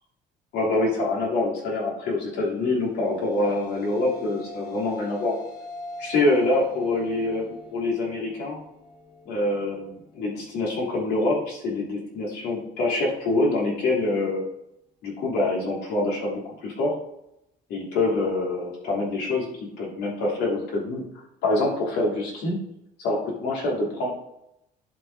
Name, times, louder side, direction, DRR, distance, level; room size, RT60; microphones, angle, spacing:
voice 1, 0.5-5.4 6.0-8.6 9.2-14.4 15.0-17.0 17.7-19.5 19.8-21.0 21.4-22.6 23.0-24.1, left 2 dB, 80° left, -3 dB, 3.2 m, -25 dB
sound 1, 2.7-11.3, left 1 dB, 55° left, 2.2 m, -42 dB
11.0 x 5.4 x 3.8 m, 0.82 s
cardioid pair, 110°, 17 cm